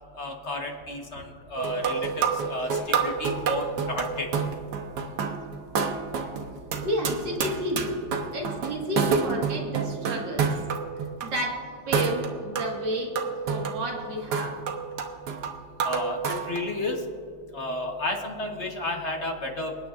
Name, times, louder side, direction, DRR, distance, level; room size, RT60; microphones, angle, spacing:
voice 1, 0.2-1.2 1.5-4.3 15.8-17.0 17.5-19.7, left 2 dB, 40° left, 1 dB, 1.4 m, -32 dB
sound 1, 1.6-11.3 11.9-16.6, right 5 dB, 70° right, 1.5 m, -29 dB
voice 2, 6.8-10.5 11.2-13.1 13.5-14.6, equal, 90° right, -1 dB, 2.5 m, -31 dB
27.0 x 9.0 x 2.5 m, 2.2 s
omnidirectional pair, 1.9 m